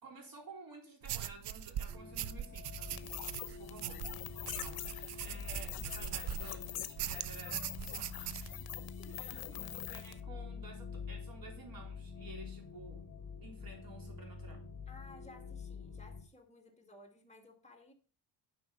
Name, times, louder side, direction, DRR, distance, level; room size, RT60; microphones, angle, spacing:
voice 1, 0.0-3.1 3.6-8.6 9.1-13.0 13.4-14.6, right 3 dB, 55° right, 2 dB, 3.6 m, -53 dB
sound 1, 1.0-6.6 7.0-8.5, right 10 dB, 70° right, 0.7 m, -41 dB
sound 2, 1.9-16.2, left 5 dB, 35° left, 2.6 m, -47 dB
sound 3, 3.0-10.2, left 11 dB, 60° left, 0.9 m, -45 dB
voice 2, 9.0-9.6 14.9-17.9, left 2 dB, 15° left, 3 dB, 2.2 m, -57 dB
10.5 x 5.8 x 5.6 m, 0.38 s
cardioid pair, 125°, 42 cm